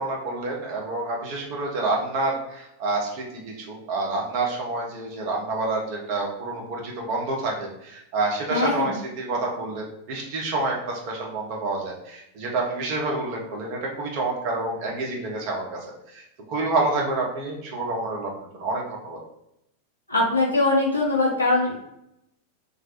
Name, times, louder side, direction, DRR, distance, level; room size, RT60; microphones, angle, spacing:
voice 1, 0.0-3.2 3.6-15.8 16.1-16.2 16.5-19.2, right 2 dB, 45° right, -1 dB, 0.7 m, -28 dB
voice 2, 8.5-9.0 20.1-21.7, left 2 dB, 80° left, -3 dB, 0.7 m, -21 dB
2.4 x 2.1 x 2.8 m, 0.81 s
figure-of-eight pair, 90°, 0 cm